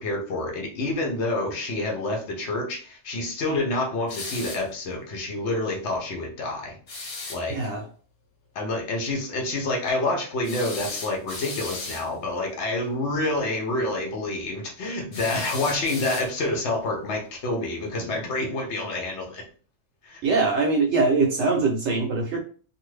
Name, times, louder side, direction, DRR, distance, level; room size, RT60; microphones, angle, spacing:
voice 1, 0.0-6.8 7.3-7.6 8.5-19.4 20.0-20.2, left 2 dB, 55° left, 1 dB, 1.1 m, -28 dB
sound 1, 4.1-4.7 6.9-7.4 10.4-12.1 15.1-16.6, left 3 dB, 90° left, 1.5 m, -36 dB
voice 2, 7.5-7.8 20.2-22.4, right 3 dB, 65° right, 1 dB, 0.8 m, -22 dB
2.6 x 2.5 x 3.2 m, 0.40 s
omnidirectional pair, 1.5 m